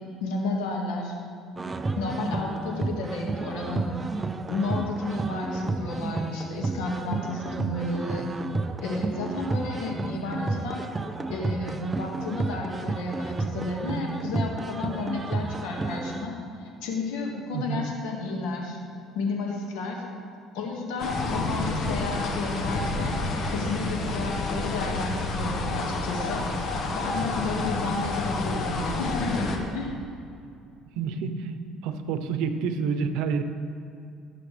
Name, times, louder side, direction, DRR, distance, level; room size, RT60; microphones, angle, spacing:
voice 1, 0.2-1.1 2.0-3.9 4.5-8.3 8.8-10.9 11.3-18.8 19.2-20.0 20.5-23.2 23.5-30.0, left 3 dB, 90° left, 0 dB, 1.9 m, -32 dB
sound 1, 1.6-16.2, right 3 dB, 20° right, 0.5 m, -31 dB
voice 2, 17.5-17.8 27.4-27.7 31.0-31.5 31.8-33.4, right 6 dB, 80° right, 9 dB, 0.8 m, -28 dB
sound 2, 21.0-29.6, left 2 dB, 50° left, 1.4 m, -29 dB
19.0 x 7.0 x 3.4 m, 2.5 s
cardioid pair, 110°, 0 cm